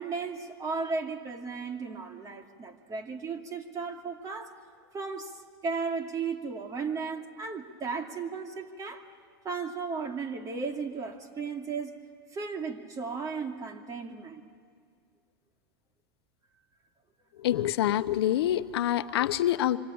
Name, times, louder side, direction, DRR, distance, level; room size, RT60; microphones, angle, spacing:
voice 1, 0.0-4.5 4.9-5.3 5.6-9.0 9.4-12.0 12.3-14.4, right 4 dB, 25° right, 5 dB, 2.6 m, -35 dB
voice 2, 17.4-19.8, left 12 dB, 80° left, 12 dB, 1.0 m, -26 dB
25.5 x 25.5 x 8.7 m, 2.1 s
supercardioid pair, 130°, 13 cm